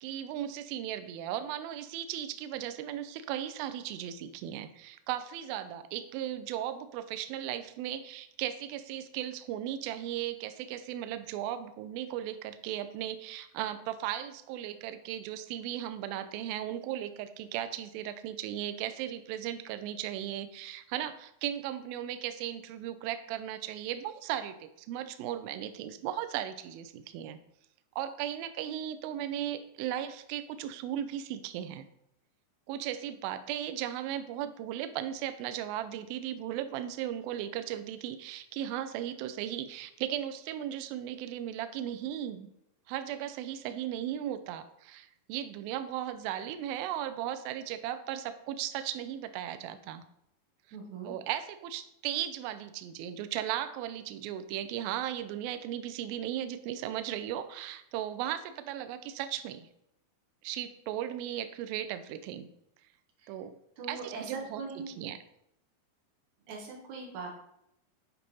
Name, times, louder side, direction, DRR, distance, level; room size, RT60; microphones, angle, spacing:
voice 1, 0.0-27.4 28.0-31.9 32.7-42.5 42.9-50.0 51.1-59.7 60.4-62.5 63.3-63.5 63.9-64.6 65.0-65.2, right 11 dB, 85° right, 11 dB, 2.1 m, -36 dB
voice 2, 50.7-51.1 63.2-63.3 63.8-64.9 66.5-67.3, right 4 dB, 65° right, 1 dB, 1.9 m, -41 dB
8.6 x 3.4 x 5.3 m, 0.79 s
omnidirectional pair, 4.8 m